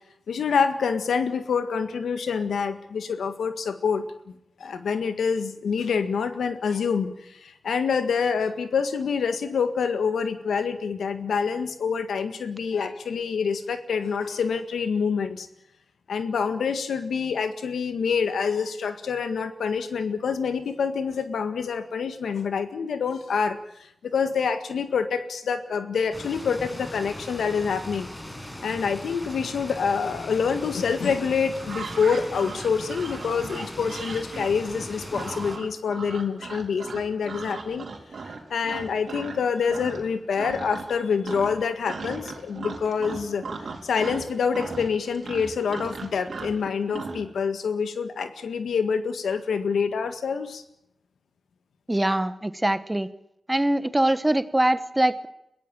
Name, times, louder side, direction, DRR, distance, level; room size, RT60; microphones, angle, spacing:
voice 1, 0.3-4.0 4.6-15.5 16.1-28.1 28.6-37.9 38.5-43.4 43.8-50.6, left 6 dB, 85° left, 9 dB, 1.7 m, -26 dB
sound 1, 26.1-35.6, left 1 dB, 20° left, 6.2 m, -39 dB
sound 2, 31.6-39.4 39.7-40.1 40.4-41.0 41.2-47.2, right 4 dB, 70° right, 4.0 m, -37 dB
voice 2, 51.9-53.1 53.5-55.3, right 1 dB, 15° right, 14 dB, 1.2 m, -23 dB
22.0 x 16.0 x 8.9 m, 0.82 s
cardioid pair, 60°, 0 cm